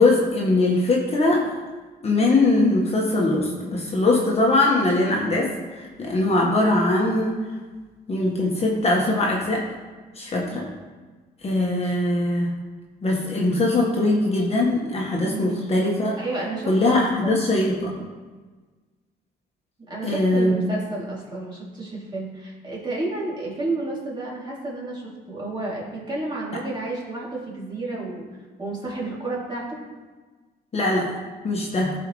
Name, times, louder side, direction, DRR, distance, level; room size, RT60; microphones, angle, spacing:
voice 1, 0.0-1.4 2.0-7.3 8.1-9.6 10.1-10.7 11.4-12.5 13.0-16.2 16.7-17.9 20.0-20.6 30.7-31.1 31.4-31.9, left 2 dB, 35° left, -2 dB, 1.5 m, -21 dB
voice 2, 15.2-15.7 16.2-17.5 19.9-28.2 28.6-29.7, right 2 dB, 25° right, -5 dB, 2.8 m, -31 dB
15.0 x 5.0 x 3.2 m, 1.3 s
cardioid pair, 125°, 18 cm